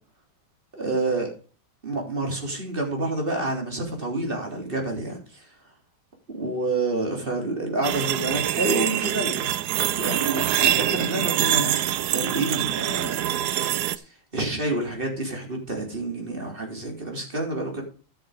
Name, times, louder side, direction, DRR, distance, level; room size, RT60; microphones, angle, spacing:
voice 1, 0.7-1.3 1.8-5.5 6.3-9.5 10.0-11.7 12.1-13.1 14.3-17.8, right 2 dB, 25° right, 1 dB, 3.6 m, -28 dB
sound 1, 7.8-14.0, right 12 dB, 70° right, 1.0 m, -25 dB
13.5 x 6.6 x 5.1 m, 0.36 s
omnidirectional pair, 2.2 m